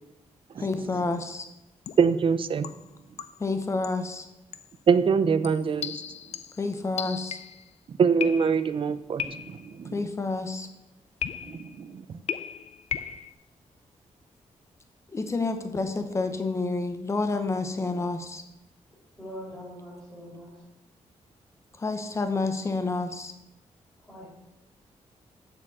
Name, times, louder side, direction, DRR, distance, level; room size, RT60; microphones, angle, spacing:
voice 1, 0.6-1.5 3.4-4.3 6.6-7.4 9.9-10.7 15.1-18.4 21.7-23.3, left 3 dB, 25° left, 8 dB, 0.9 m, -29 dB
sound 1, 1.1-1.4 1.9-2.2 2.6-3.5 3.8-4.1 4.5-4.8 5.4-7.7 8.2-8.8 9.2-9.8 11.2-11.8 12.3-13.3, left 8 dB, 60° left, 0.5 m, -36 dB
voice 2, 2.0-2.7 4.9-6.0 8.0-9.9 11.5-12.0, right 6 dB, 45° right, 13 dB, 0.5 m, -24 dB
voice 3, 19.2-20.6 24.1-24.3, equal, 5° left, -5 dB, 3.0 m, -42 dB
7.2 x 6.7 x 7.3 m, 0.93 s
wide cardioid pair, 175°, 12 cm